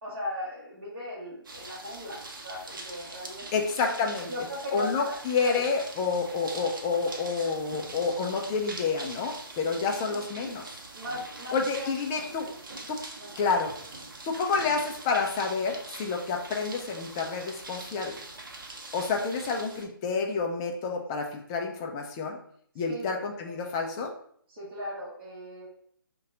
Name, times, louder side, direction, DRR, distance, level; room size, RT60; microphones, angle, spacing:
voice 1, 0.0-2.2 2.4-3.7 4.3-5.1 5.4-5.7 7.4-7.5 10.0-10.2 10.9-12.6 13.2-13.5 22.9-23.1 23.6-23.7 24.5-25.7, left 1 dB, 30° right, -6 dB, 1.1 m, -38 dB
sound 1, 1.4-19.8, right 2 dB, 60° right, 0.7 m, -43 dB
voice 2, 3.5-4.3 4.7-10.8 11.5-12.5 12.9-13.0 13.4-13.7 14.3-18.2 18.9-22.4 22.8-24.1, left 4 dB, 15° left, 2 dB, 0.3 m, -29 dB
3.9 x 2.2 x 3.7 m, 0.63 s
figure-of-eight pair, 145°, 12 cm